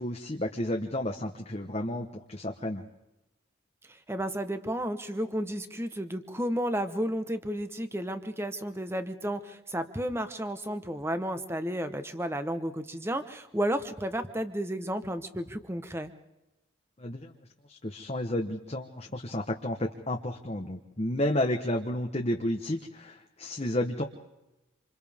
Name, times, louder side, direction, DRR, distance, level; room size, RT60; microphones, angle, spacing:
voice 1, 0.0-2.8 17.0-17.3 17.7-24.0, left 1 dB, 30° left, 2 dB, 1.1 m, -31 dB
voice 2, 3.9-16.1, equal, 10° right, 9 dB, 1.1 m, -32 dB
27.5 x 27.5 x 3.6 m, 0.96 s
head